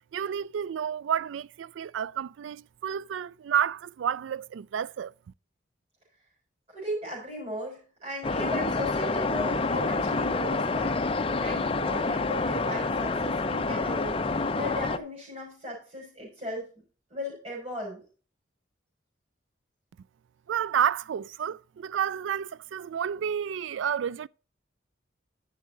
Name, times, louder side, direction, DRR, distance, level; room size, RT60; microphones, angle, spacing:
voice 1, 0.1-5.1 20.5-24.3, right 8 dB, 85° right, 0.3 m, -30 dB
voice 2, 6.7-16.8 17.1-18.0, left 1 dB, 30° right, 5.9 m, -37 dB
sound 1, 8.2-15.0, left 3 dB, 30° left, 0.6 m, -28 dB
11.0 x 7.1 x 3.9 m
head